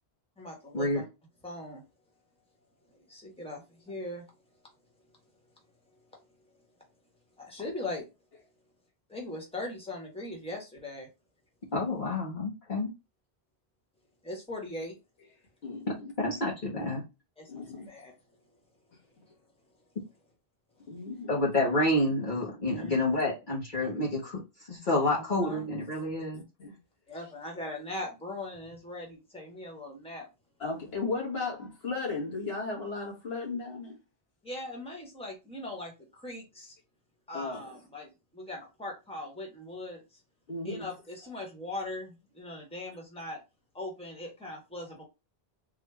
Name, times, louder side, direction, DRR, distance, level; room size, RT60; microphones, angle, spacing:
voice 1, 0.4-1.1 1.4-1.8 2.9-4.2 7.4-8.1 9.1-11.1 14.2-15.0 17.4-18.1 22.7-23.0 25.0-25.7 27.1-30.3 34.4-36.8 37.3-40.2 40.6-43.4 43.7-45.0, left 1 dB, 5° left, 1.3 m, -40 dB
voice 2, 11.7-12.9 16.2-17.0 21.3-24.4 24.7-26.4, left 1 dB, 50° left, 1.2 m, -28 dB
voice 3, 15.6-16.4 17.5-17.9 20.9-21.3 26.3-26.7 30.6-34.0 37.3-37.6 40.5-40.9, left 3 dB, 75° left, 1.6 m, -35 dB
3.6 x 2.5 x 3.3 m
omnidirectional pair, 1.0 m